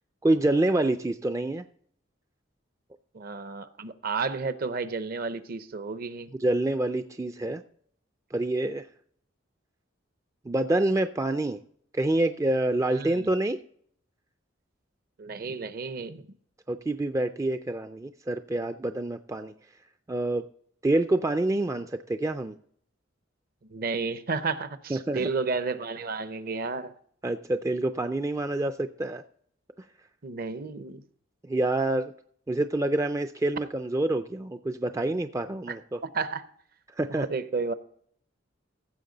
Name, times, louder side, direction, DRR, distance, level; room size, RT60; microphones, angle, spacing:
voice 1, 0.2-1.6 6.4-7.6 8.3-8.9 10.5-11.6 11.9-13.6 16.7-19.5 20.1-20.5 20.8-22.6 24.9-25.3 27.2-29.2 31.5-32.1 32.5-36.0 36.9-37.3, right 2 dB, 15° right, 0.3 m, -27 dB
voice 2, 3.1-6.3 12.9-13.3 15.2-16.2 23.7-26.9 30.2-31.0 35.7-35.8 36.1-36.4 37.1-37.7, right 4 dB, 50° right, 0.7 m, -32 dB
15.5 x 7.1 x 3.9 m
head